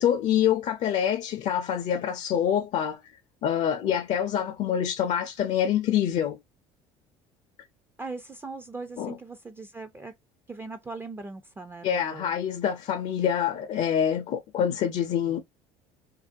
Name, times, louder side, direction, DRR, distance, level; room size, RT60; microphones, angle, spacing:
voice 1, 0.0-3.0 3.4-6.4 9.0-9.2 11.8-15.4, left 9 dB, 55° left, 0.5 m, -26 dB
voice 2, 8.0-10.1 10.5-12.3, right 3 dB, 15° right, 0.4 m, -39 dB
2.5 x 2.1 x 2.5 m
supercardioid pair, 95°, 14 cm